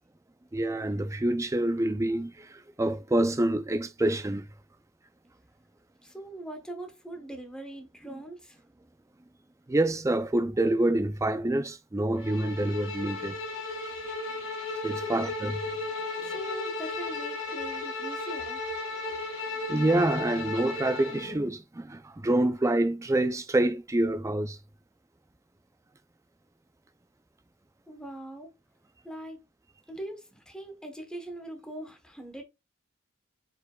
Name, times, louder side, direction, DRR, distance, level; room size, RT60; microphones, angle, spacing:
voice 1, 0.5-4.5 9.7-13.4 14.8-15.6 19.7-24.6, right 1 dB, 15° right, 0.4 m, -27 dB
voice 2, 6.0-8.6 15.0-15.3 16.2-18.6 27.9-28.5 29.0-29.4 29.9-32.4, right 1 dB, 5° left, 1.0 m, -41 dB
Bowed string instrument, 12.2-21.3, left 3 dB, 65° left, 1.8 m, -35 dB
4.9 x 4.5 x 2.3 m
head